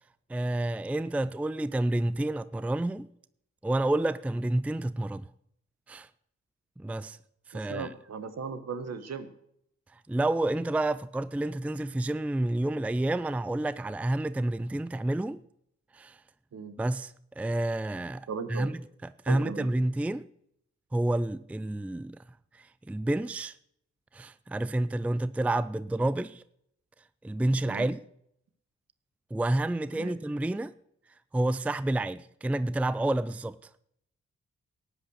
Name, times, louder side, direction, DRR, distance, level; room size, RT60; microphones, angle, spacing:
voice 1, 0.3-3.1 3.6-5.3 5.9-6.1 6.8-7.2 7.5-7.9 9.9-15.4 15.9-16.2 16.8-20.3 20.9-22.2 22.5-23.6 24.1-26.4 27.2-28.0 29.3-30.7 31.3-33.7, right 1 dB, 5° right, 0.4 m, -29 dB
voice 2, 7.5-9.3 16.5-16.7 18.3-18.7 19.3-19.7 27.6-27.9 29.9-30.1, right 5 dB, 60° right, 1.5 m, -37 dB
13.0 x 8.9 x 6.5 m
supercardioid pair, 45°, 29 cm